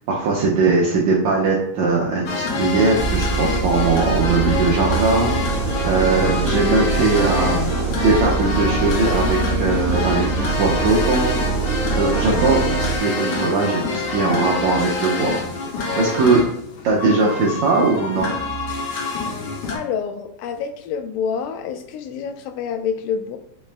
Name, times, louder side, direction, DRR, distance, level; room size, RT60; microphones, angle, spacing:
voice 1, 0.1-7.6 8.0-15.3 16.0-16.4 16.8-18.3, right 3 dB, 80° right, -3 dB, 1.6 m, -20 dB
sound 1, 2.3-19.8, left 3 dB, 75° left, 1.9 m, -26 dB
sound 2, 3.0-13.0, right 5 dB, 55° right, 1.6 m, -24 dB
voice 2, 19.7-23.4, left 7 dB, 90° left, 7 dB, 2.2 m, -27 dB
5.5 x 2.1 x 3.2 m, 0.80 s
omnidirectional pair, 3.9 m